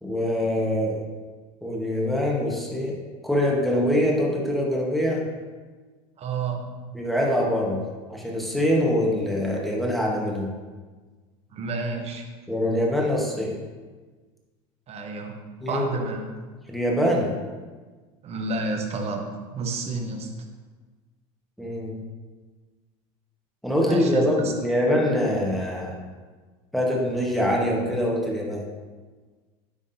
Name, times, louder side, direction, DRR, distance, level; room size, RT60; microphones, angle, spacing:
voice 1, 0.0-1.0 1.6-3.0 3.2-5.2 6.9-7.8 8.1-10.5 12.5-13.6 15.6-15.8 16.7-17.3 21.6-22.0 23.6-26.0 26.7-28.6, left 1 dB, ahead, -3 dB, 1.3 m, -24 dB
voice 2, 6.2-6.7 11.5-12.3 14.9-15.4 15.7-16.3 18.2-20.3 23.8-24.5, right 3 dB, 40° right, 2 dB, 1.0 m, -30 dB
9.9 x 3.5 x 2.7 m, 1.4 s
supercardioid pair, 100°, 17 cm